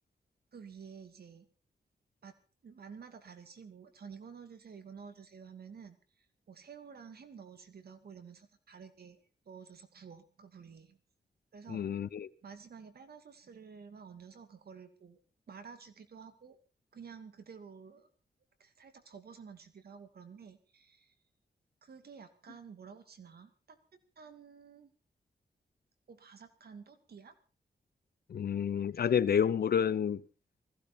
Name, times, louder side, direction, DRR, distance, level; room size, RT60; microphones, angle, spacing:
voice 1, 0.5-1.5 2.2-2.3 2.6-9.2 9.5-11.0 11.5-11.8 12.4-15.2 15.5-16.6 16.9-18.1 18.6-21.1 21.8-23.8 24.2-24.9 26.1-27.3, right 6 dB, 70° right, 2.4 m, -51 dB
voice 2, 11.7-12.3 28.3-30.2, left 8 dB, 70° left, 0.8 m, -29 dB
20.5 x 15.5 x 4.3 m
wide cardioid pair, 95°, 17 cm